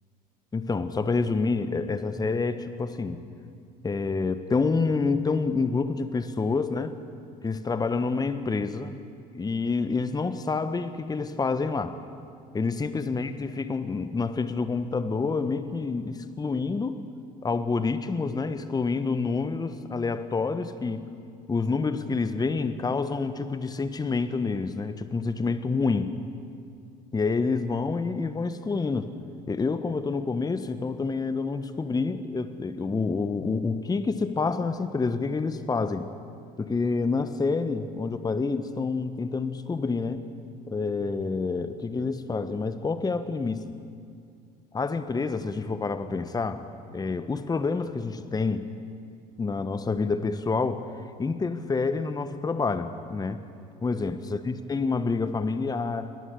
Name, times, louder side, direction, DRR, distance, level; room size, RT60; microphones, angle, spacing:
voice 1, 0.5-3.2 3.8-7.0 7.4-9.0 9.3-12.0 12.5-17.0 17.4-21.0 21.5-26.1 27.1-29.1 29.5-36.1 36.6-40.3 40.7-43.7 44.7-46.7 46.9-48.7 49.4-50.8 51.2-53.4 53.8-56.1, left 4 dB, 20° left, 10 dB, 1.2 m, -28 dB
23.0 x 19.0 x 6.9 m, 2.3 s
hypercardioid pair, 65°, 20 cm